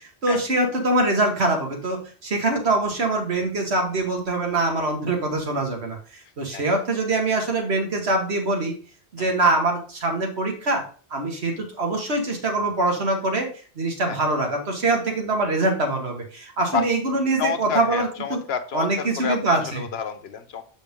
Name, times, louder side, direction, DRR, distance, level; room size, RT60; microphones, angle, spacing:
voice 1, 0.2-8.8 9.1-10.8 11.1-13.5 13.8-18.4 18.7-19.8, right 2 dB, 75° right, 2 dB, 1.9 m, -23 dB
voice 2, 17.4-20.6, left 6 dB, 75° left, 9 dB, 1.1 m, -29 dB
7.3 x 5.2 x 3.6 m, 0.40 s
omnidirectional pair, 1.1 m